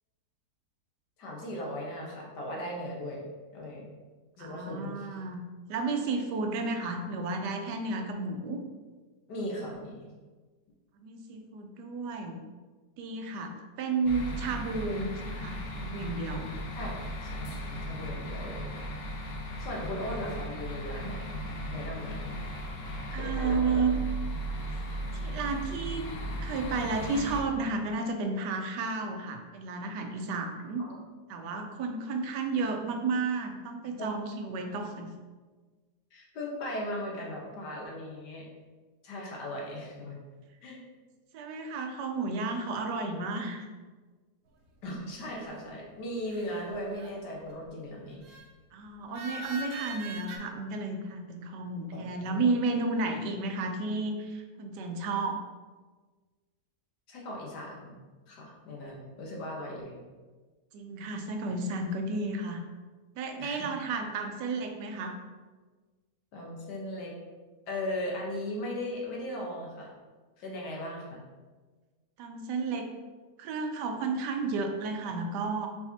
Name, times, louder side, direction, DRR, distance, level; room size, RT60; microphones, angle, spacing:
voice 1, 1.2-3.2 3.5-3.9 4.4-5.1 9.3-9.9 16.7-18.7 19.6-21.4 21.7-22.3 23.1-24.0 30.8-31.0 34.0-34.1 36.1-38.5 39.0-40.2 40.6-40.8 44.8-48.4 50.5-50.6 51.9-52.5 57.1-57.9 58.3-60.0 63.4-63.7 66.3-67.1 67.7-69.9 70.4-71.2, left 1 dB, 80° left, -2 dB, 1.6 m, -38 dB
voice 2, 4.4-5.4 5.7-8.6 11.0-12.4 13.0-16.5 23.1-23.9 25.1-26.0 26.4-30.9 31.3-35.1 41.3-43.7 48.7-55.4 60.7-62.6 63.2-65.2 72.2-72.9 73.4-75.7, right 3 dB, 85° right, 4 dB, 1.2 m, -32 dB
sound 1, 14.0-27.4, right 1 dB, 65° left, 1.1 m, -36 dB
sound 2, 46.3-47.3 48.2-48.5 49.1-50.4, right 2 dB, 65° right, 0.8 m, -41 dB
4.6 x 4.1 x 2.7 m, 1.4 s
omnidirectional pair, 1.8 m